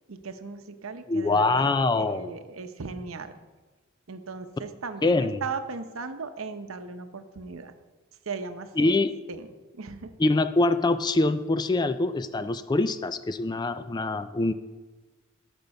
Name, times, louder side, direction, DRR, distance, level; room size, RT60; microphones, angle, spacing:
voice 1, 0.1-3.3 4.1-7.7 8.3-9.0 9.3-9.5 9.7-10.1, right 4 dB, 85° right, 9 dB, 0.8 m, -37 dB
voice 2, 1.1-2.4 5.0-5.4 8.8-9.1 10.2-14.5, left 2 dB, 20° left, 11 dB, 0.3 m, -24 dB
13.5 x 5.3 x 5.3 m, 1.3 s
head